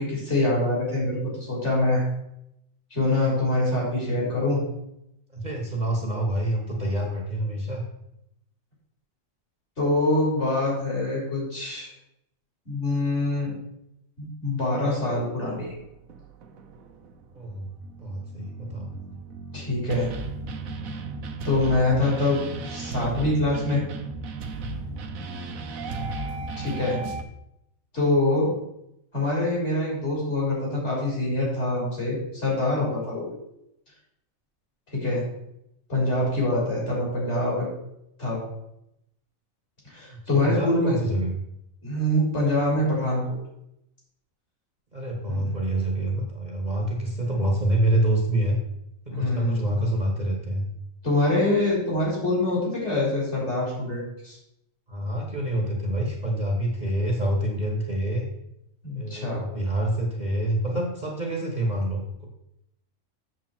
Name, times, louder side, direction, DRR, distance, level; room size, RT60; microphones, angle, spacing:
voice 1, 0.0-2.0 2.9-4.6 9.8-11.9 12.7-13.5 14.2-15.7 19.5-20.1 21.4-23.8 26.6-27.0 27.9-28.5 29.1-33.3 34.9-35.2 35.9-37.7 38.2-38.4 39.8-41.0 41.8-43.2 45.3-45.5 49.1-49.6 51.0-54.4 58.8-59.4, left 2 dB, 55° left, -4 dB, 4.4 m, -25 dB
voice 2, 5.3-7.8 17.3-17.7 18.0-18.9 25.7-26.1 40.1-41.3 44.9-48.6 49.0-50.7 54.9-58.2 58.9-62.3, right 1 dB, 35° right, 0 dB, 1.6 m, -27 dB
sound 1, 15.5-27.2, right 3 dB, 80° right, 1.3 m, -35 dB
7.9 x 7.2 x 4.4 m, 0.79 s
omnidirectional pair, 1.4 m